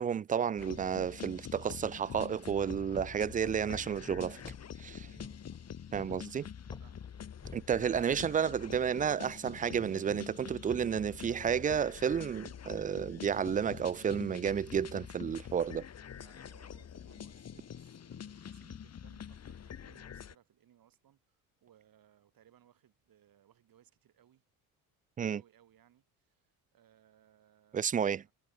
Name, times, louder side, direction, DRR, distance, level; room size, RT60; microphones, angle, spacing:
voice 1, 0.0-4.4 4.8-5.0 5.9-6.5 7.5-15.8 25.2-25.4 27.7-28.2, right 8 dB, 20° right, 0.4 m, -31 dB
sound 1, 0.6-20.3, left 8 dB, 35° left, 1.8 m, -46 dB
sound 2, 2.9-8.6, left 2 dB, 10° left, 1.5 m, -52 dB
voice 2, 5.0-5.3 6.8-7.1 16.0-24.4 25.4-28.3, right 11 dB, 55° right, 7.9 m, -66 dB
hypercardioid pair, 65°, 42 cm